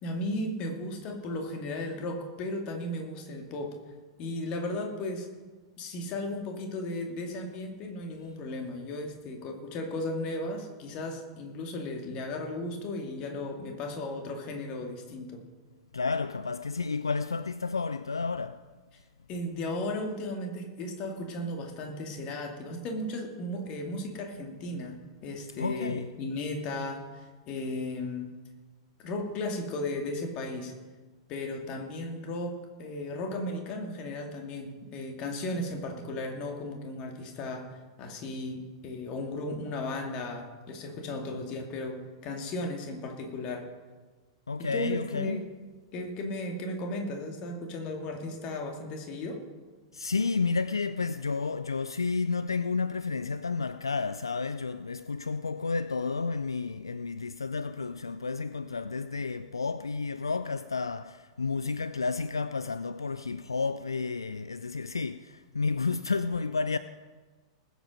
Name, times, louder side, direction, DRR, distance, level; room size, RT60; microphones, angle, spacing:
voice 1, 0.0-3.8 4.2-5.3 5.8-15.4 19.3-28.3 29.0-30.7 31.3-43.7 44.6-45.4 45.9-49.4, left 1 dB, 35° left, 2.4 m, -35 dB
voice 2, 15.9-18.6 25.6-26.1 44.5-45.4 49.9-66.8, left 4 dB, 75° left, 0.4 m, -31 dB
20.0 x 8.2 x 5.2 m
figure-of-eight pair, 95°, 2 cm